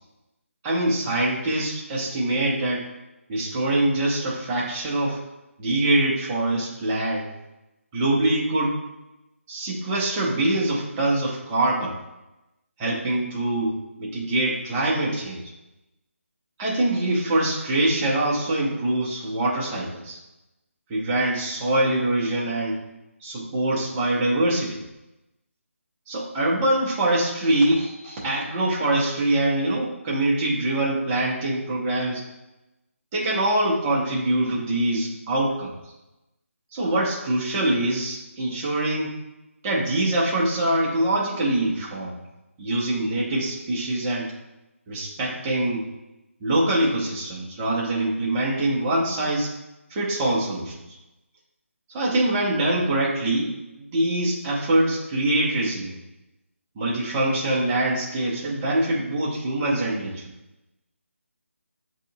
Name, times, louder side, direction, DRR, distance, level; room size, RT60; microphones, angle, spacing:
voice 1, 0.6-2.9 3.3-5.2 5.6-7.3 7.9-8.8 9.5-11.9 12.8-15.4 16.6-20.2 20.9-22.8 23.2-24.8 26.1-32.2 33.1-35.7 36.7-39.2 39.6-42.2 42.6-44.3 44.9-45.8 46.4-49.5 49.9-50.7 51.9-56.0 56.8-60.2, right 1 dB, 5° right, -5 dB, 0.3 m, -24 dB
7.3 x 2.7 x 2.7 m, 0.96 s
figure-of-eight pair, 175°, 8 cm